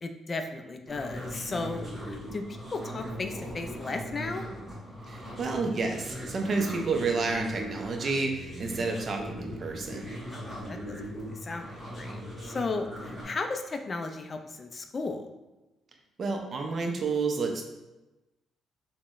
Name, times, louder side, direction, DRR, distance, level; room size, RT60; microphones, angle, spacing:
voice 1, 0.0-4.5 10.3-10.9 11.4-11.7 11.9-15.3, left 3 dB, 35° left, 6 dB, 0.3 m, -35 dB
sound 1, 0.9-13.2, equal, 20° right, 1.4 m, -40 dB
voice 2, 5.1-10.1 16.2-17.6, right 4 dB, 45° right, 2 dB, 0.5 m, -30 dB
3.7 x 2.1 x 2.4 m, 1.0 s
cardioid pair, 90°, 0 cm